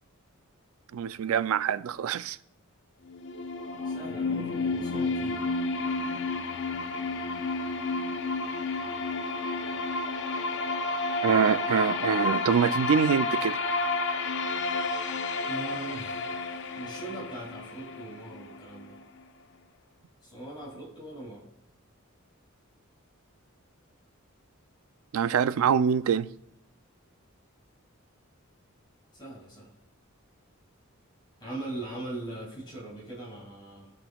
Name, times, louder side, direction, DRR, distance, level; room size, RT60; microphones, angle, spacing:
voice 1, 0.9-2.4 11.2-13.6 25.1-26.3, right 7 dB, 75° right, 0.3 m, -25 dB
sound 1, 3.1-19.0, left 3 dB, 60° left, 0.6 m, -31 dB
voice 2, 3.8-5.4 15.5-16.3 16.7-19.0 20.2-21.5 29.1-29.7 31.4-33.9, right 2 dB, 20° left, 2.5 m, -40 dB
15.5 x 5.2 x 2.3 m
head